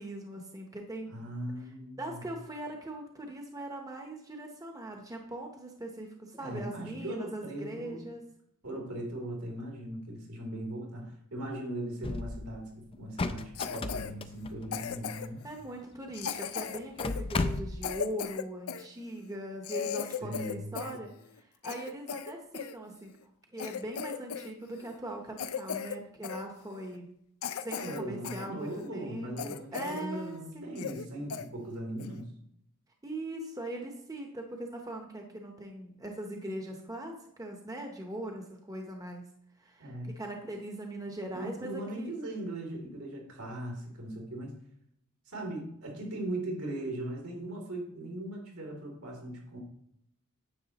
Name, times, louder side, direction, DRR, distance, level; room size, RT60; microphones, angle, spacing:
voice 1, 0.0-1.1 2.0-8.2 15.4-21.1 21.4-23.2 23.5-27.1 27.6-30.8 33.0-39.2 39.6-42.1, right 1 dB, 15° right, 2 dB, 0.9 m, -40 dB
voice 2, 1.1-2.3 6.4-8.1 8.6-15.4 20.2-20.9 27.8-32.3 39.8-40.1 41.3-44.5 45.2-49.6, right 1 dB, 75° right, 0 dB, 3.0 m, -39 dB
sound 1, 12.0-12.6 12.9-15.1 15.9-16.0 16.2-16.3 16.8-18.0, left 3 dB, 25° left, 0.4 m, -34 dB
Cough, 13.5-14.1 14.7-15.4 16.1-18.9 19.3-19.4 19.6-21.0 21.3-22.7 23.2-23.3 23.6-24.5 24.8-25.0 25.4-26.0 26.2-26.4 26.9-27.0 27.4-28.5 28.8-28.9 29.4-30.1 30.4-30.5 30.8-31.0 31.3-31.5 32.0-32.2, left 7 dB, 75° left, 0.5 m, -37 dB
9.8 x 7.7 x 3.0 m, 0.72 s
head